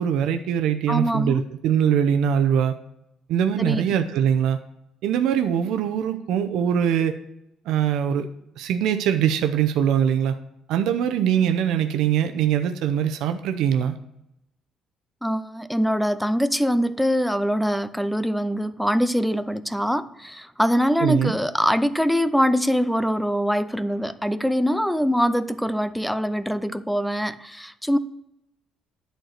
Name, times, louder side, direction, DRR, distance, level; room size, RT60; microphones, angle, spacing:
voice 1, 0.0-2.7 3.3-4.6 5.0-7.1 7.7-8.3 8.6-10.3 10.7-14.0 21.0-21.3, right 9 dB, 75° right, 0.7 m, -22 dB
voice 2, 0.9-1.4 3.6-3.8 15.2-28.0, equal, ahead, 0.3 m, -23 dB
10.5 x 4.6 x 6.5 m
cardioid pair, 165°, 0 cm